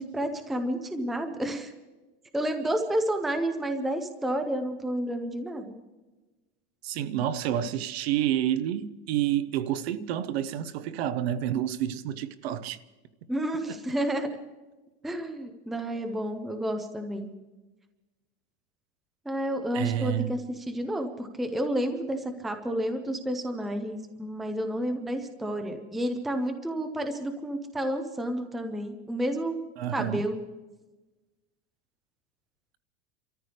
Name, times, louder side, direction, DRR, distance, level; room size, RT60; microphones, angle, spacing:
voice 1, 0.0-1.7 2.3-5.7 13.3-14.3 15.0-17.3 19.3-29.6 29.9-30.4, right 1 dB, ahead, 0.5 m, -30 dB
voice 2, 6.8-12.8 19.7-20.3 29.8-30.3, right 11 dB, 65° right, 0.9 m, -29 dB
28.5 x 14.0 x 3.4 m
supercardioid pair, 170°, 33 cm